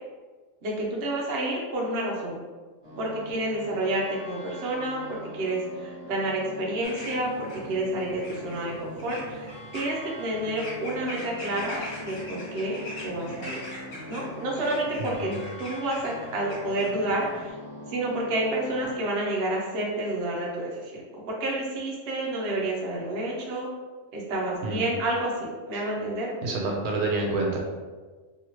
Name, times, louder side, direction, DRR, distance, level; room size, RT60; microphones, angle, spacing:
voice 1, 0.6-2.4 3.0-13.6 14.1-15.3 15.6-17.5 17.9-23.7 24.1-26.3, right 1 dB, 55° right, -3 dB, 0.9 m, -29 dB
sound 1, 2.8-18.9, left 1 dB, 25° right, 0.9 m, -42 dB
sound 2, 6.8-17.5, left 1 dB, 60° left, 1.1 m, -42 dB
voice 2, 15.0-15.4 24.6-24.8 26.4-27.6, right 2 dB, 85° right, -1 dB, 1.1 m, -28 dB
2.9 x 2.7 x 2.9 m, 1.4 s
omnidirectional pair, 1.6 m